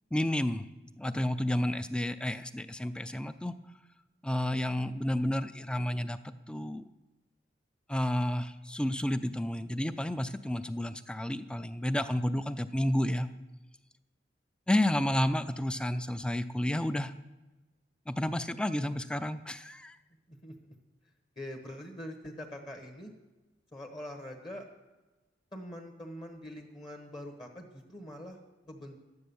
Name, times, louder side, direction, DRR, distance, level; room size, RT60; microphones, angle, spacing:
voice 1, 0.1-0.7 1.0-3.5 4.2-6.2 6.5-6.8 7.9-13.3 14.7-17.1 18.1-20.0, left 1 dB, 5° left, 12 dB, 0.4 m, -31 dB
voice 2, 21.4-23.1 23.7-24.6 25.5-28.4 28.7-29.0, left 1 dB, 25° left, 3 dB, 1.2 m, -43 dB
12.0 x 9.6 x 7.0 m, 1.2 s
head